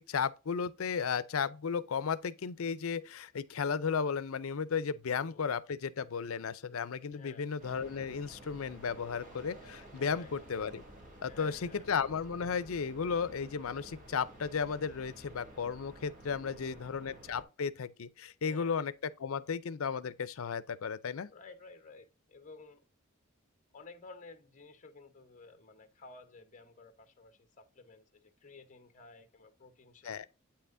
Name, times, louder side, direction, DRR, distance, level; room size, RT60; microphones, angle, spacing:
voice 1, 0.0-10.8 11.2-21.3 30.0-30.3, left 6 dB, 75° left, 0.5 m, -34 dB
voice 2, 5.1-5.4 7.1-7.5 10.0-10.3 11.3-11.9 16.4-17.0 18.4-18.8 21.3-22.8 23.7-30.3, left 3 dB, 35° left, 0.9 m, -54 dB
sound 1, 7.6-17.4, right 1 dB, 40° right, 2.9 m, -52 dB
8.6 x 5.7 x 2.6 m
head